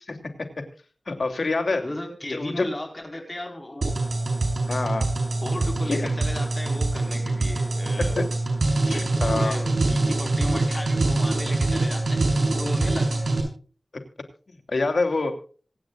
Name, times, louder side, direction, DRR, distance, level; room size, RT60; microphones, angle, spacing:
voice 1, 1.1-1.8 2.3-2.7 4.7-5.1 5.9-6.1 8.2-8.3 8.9-9.6 14.5-15.3, left 3 dB, 80° left, 6 dB, 2.9 m, -26 dB
voice 2, 1.8-4.0 5.4-8.2 8.9-13.3, left 1 dB, 30° left, 3 dB, 4.5 m, -36 dB
sound 1, 3.8-13.4, right 2 dB, 75° right, 6.6 m, -24 dB
26.0 x 9.5 x 2.4 m, 0.40 s
wide cardioid pair, 50°, 0 cm